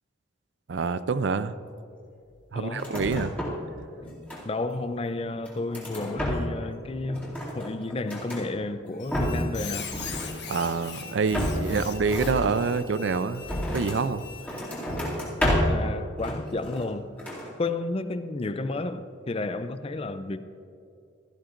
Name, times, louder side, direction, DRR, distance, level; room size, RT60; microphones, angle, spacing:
voice 1, 0.7-1.6 2.5-3.3 10.5-13.5 13.7-14.2, right 4 dB, 70° right, 14 dB, 0.4 m, -26 dB
voice 2, 2.6-3.3 4.4-9.9 11.7-11.9 15.4-17.1 17.6-20.4, left 2 dB, 30° left, 11 dB, 0.4 m, -32 dB
sound 1, 2.7-3.7 4.0-4.8 5.2-6.7 7.0-8.5 8.9-9.6 9.9-10.8 11.3-14.1 14.4-15.9 16.2-16.9 17.2-17.5, equal, 10° left, 2.5 m, -31 dB
Squeak, 9.0-15.0, left 7 dB, 60° left, 1.4 m, -41 dB
16.0 x 14.5 x 2.6 m, 2.5 s
head